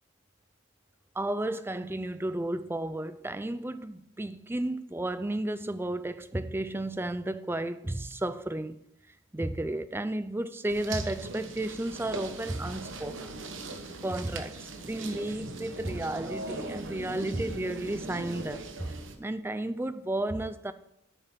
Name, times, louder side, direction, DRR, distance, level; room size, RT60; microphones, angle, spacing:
voice 1, 1.2-8.8 9.3-13.4 14.0-20.7, right 1 dB, 10° right, 0.4 m, -33 dB
sound 1, 10.7-19.1, right 2 dB, 60° right, 1.1 m, -40 dB
9.0 x 6.8 x 5.8 m
head